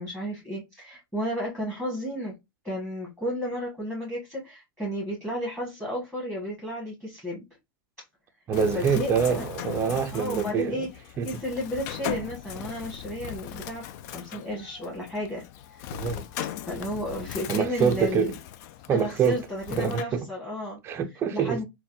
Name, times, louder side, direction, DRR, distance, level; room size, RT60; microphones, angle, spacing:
voice 1, 0.0-2.4 2.6-7.4 8.7-9.4 10.1-10.9 11.2-15.4 15.7-16.2 16.6-18.4 18.9-20.8 21.3-21.7, equal, 5° left, 1.5 m, -33 dB
Bird, 8.5-20.0, left 11 dB, 50° left, 0.4 m, -39 dB
voice 2, 8.5-10.9 11.2-11.4 15.9-16.3 17.5-18.3 18.9-20.3 20.8-21.6, right 7 dB, 20° right, 0.5 m, -26 dB
3.9 x 2.3 x 2.6 m
supercardioid pair, 140°, 12 cm